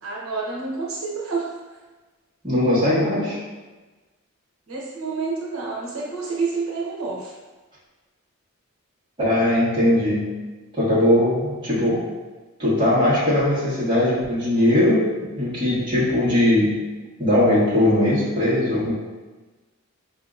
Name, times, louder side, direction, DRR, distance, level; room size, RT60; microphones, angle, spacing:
voice 1, 0.0-1.5 4.7-7.3, right 4 dB, 85° right, -4 dB, 0.8 m, -28 dB
voice 2, 2.4-3.4 9.2-10.3 10.7-12.0 12.6-16.8 17.2-18.9, left 1 dB, 25° right, -10 dB, 1.4 m, -20 dB
5.0 x 2.7 x 2.4 m, 1.2 s
head